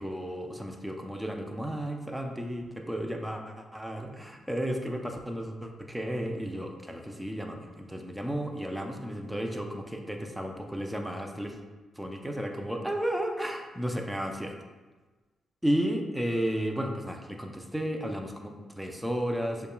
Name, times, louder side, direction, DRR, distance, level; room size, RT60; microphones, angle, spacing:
voice 1, 0.0-11.6 12.0-14.5 15.6-19.7, equal, 5° right, 3 dB, 0.6 m, -33 dB
6.4 x 2.3 x 2.3 m, 1.3 s
supercardioid pair, 50°, 0 cm